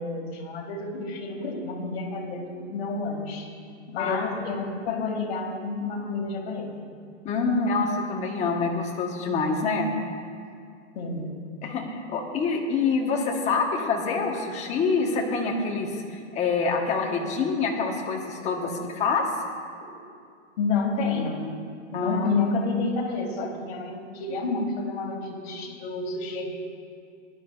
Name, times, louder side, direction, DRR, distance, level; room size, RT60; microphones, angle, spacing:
voice 1, 0.0-3.5 3.9-6.8 10.9-11.3 18.6-18.7 19.8-19.9 20.6-21.5 21.9-26.4, left 3 dB, 55° left, 1 dB, 2.2 m, -29 dB
voice 2, 7.2-9.9 11.6-18.7 19.0-19.3 21.9-22.3, left 4 dB, 20° left, 1 dB, 1.1 m, -26 dB
18.5 x 11.5 x 2.4 m, 2.3 s
hypercardioid pair, 155°, 36 cm